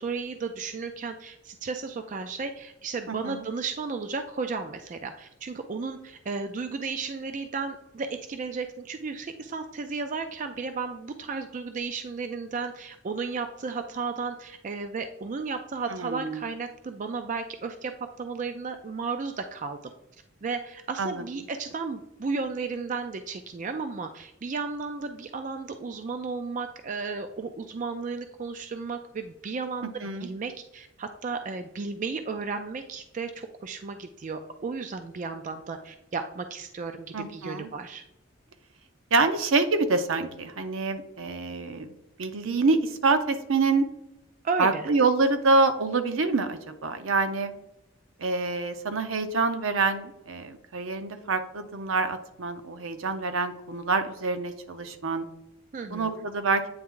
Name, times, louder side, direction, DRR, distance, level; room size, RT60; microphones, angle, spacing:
voice 1, 0.0-17.9 18.2-19.8 20.4-38.0 44.4-44.9 55.7-56.3, right 4 dB, 40° right, 7 dB, 0.3 m, -34 dB
voice 2, 3.1-3.4 15.9-16.4 21.0-21.2 30.0-30.3 37.1-37.7 39.1-41.9 42.2-43.9 44.6-47.5 48.2-55.3 55.9-56.6, right 3 dB, 70° right, 8 dB, 0.7 m, -26 dB
8.7 x 3.4 x 3.7 m, 0.87 s
head